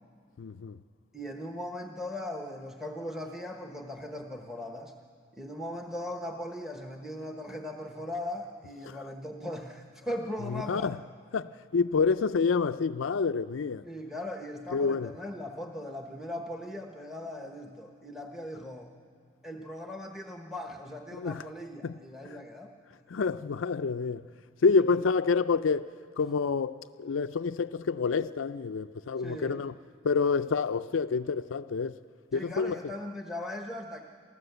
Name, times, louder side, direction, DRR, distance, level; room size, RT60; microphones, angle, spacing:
voice 1, 0.4-0.8 10.5-11.0 11.3-13.8 14.7-15.1 21.1-21.4 21.8-22.0 22.2-22.4 23.1-24.3 24.6-25.9 26.2-29.7 30.0-31.9 32.3-32.8, left 5 dB, 85° left, 0.5 m, -28 dB
voice 2, 1.1-4.9 5.4-10.9 13.8-18.9 19.4-22.7 24.8-25.0 29.2-29.6 32.3-34.0, left 1 dB, ahead, 1.0 m, -39 dB
28.0 x 14.0 x 8.0 m
head